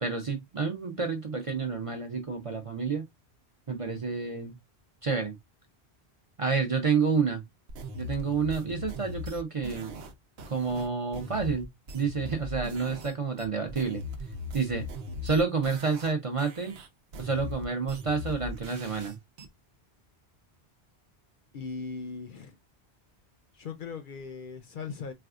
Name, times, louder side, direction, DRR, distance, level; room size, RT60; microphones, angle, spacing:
voice 1, 0.0-3.1 3.7-4.6 5.0-5.4 6.4-7.4 8.0-10.0 10.5-11.7 11.9-14.0 14.5-14.8 15.2-16.8 17.2-19.2, right 5 dB, 40° right, 0.5 m, -29 dB
sound 1, 7.7-13.1 13.4-16.1 16.4-19.5, left 1 dB, 90° right, 1.0 m, -40 dB
voice 2, 21.5-22.6 23.5-25.1, left 5 dB, 60° left, 0.6 m, -39 dB
4.2 x 2.3 x 2.4 m
omnidirectional pair, 1.1 m